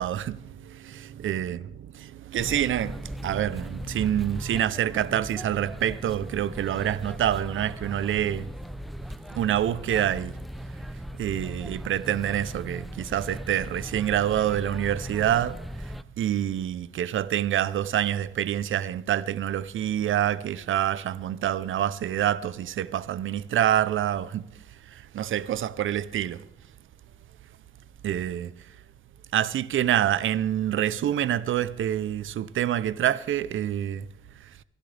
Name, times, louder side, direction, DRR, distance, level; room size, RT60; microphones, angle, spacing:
voice 1, 0.0-8.5 9.3-10.3 11.2-15.6 16.2-24.4 24.9-26.4 28.0-28.5 29.3-34.1, right 11 dB, 75° right, 0.7 m, -27 dB
sound 1, 2.4-16.0, equal, ahead, 0.6 m, -38 dB
24.0 x 12.0 x 3.4 m
cardioid pair, 75°, 21 cm